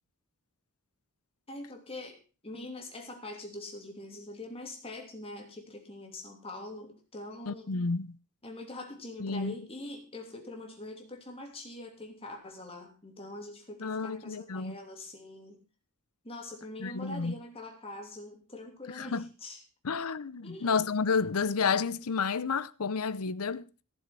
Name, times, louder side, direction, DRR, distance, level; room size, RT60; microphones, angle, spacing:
voice 1, 1.5-2.2 2.4-7.8 8.4-15.6 16.2-19.6 20.4-20.9, left 2 dB, 25° left, 3.0 m, -43 dB
voice 2, 7.5-8.2 9.2-9.5 13.8-14.8 16.8-17.3 18.9-19.3 19.8-23.7, left 5 dB, 85° left, 0.7 m, -30 dB
16.0 x 7.3 x 6.0 m
head